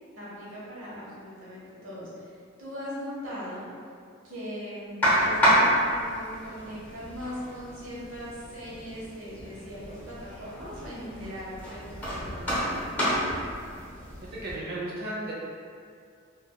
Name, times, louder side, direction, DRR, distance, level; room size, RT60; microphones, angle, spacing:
voice 1, 0.1-3.7 4.2-13.1, equal, 80° right, -8 dB, 0.9 m, -40 dB
sound 1, 5.0-14.6, equal, 10° left, 0.8 m, -29 dB
voice 2, 14.3-15.3, right 1 dB, 50° right, -6 dB, 0.7 m, -34 dB
3.2 x 2.2 x 2.3 m, 2.2 s
head